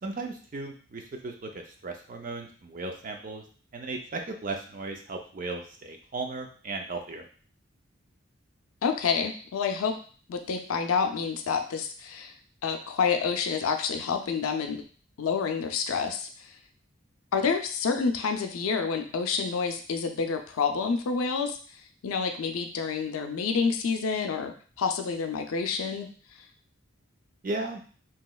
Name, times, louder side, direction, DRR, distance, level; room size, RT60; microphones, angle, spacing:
voice 1, 0.0-3.4 3.7-7.2 27.4-27.8, right 3 dB, 40° right, 3 dB, 0.4 m, -36 dB
voice 2, 8.8-10.0 10.3-12.3 12.6-14.8 15.2-16.5 17.3-21.6 22.0-26.1, left 5 dB, 90° left, 6 dB, 0.4 m, -28 dB
3.0 x 2.8 x 2.3 m, 0.42 s
head